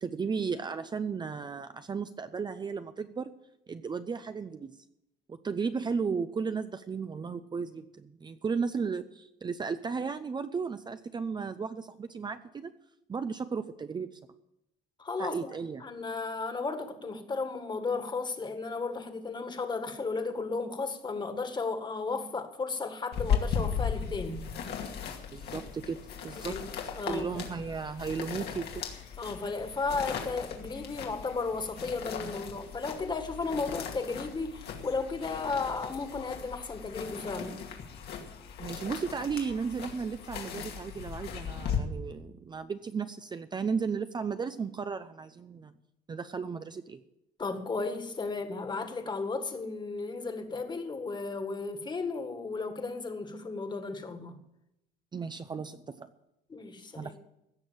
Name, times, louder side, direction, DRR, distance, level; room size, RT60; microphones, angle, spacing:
voice 1, 0.0-3.3 3.7-4.8 5.3-12.7 13.1-14.2 15.2-15.9 25.3-26.6 27.1-28.9 32.2-32.5 38.6-45.7 46.1-47.0 55.1-56.1 57.0-57.2, right 5 dB, 25° right, 10 dB, 0.6 m, -35 dB
voice 2, 15.0-15.5 15.8-24.5 26.4-26.6 27.0-27.3 29.2-37.6 47.4-54.4 56.5-57.1, left 4 dB, 25° left, 7 dB, 1.9 m, -34 dB
sound 1, 23.1-41.8, left 7 dB, 75° left, 2.3 m, -37 dB
16.5 x 6.4 x 8.8 m, 0.85 s
cardioid pair, 110°, 17 cm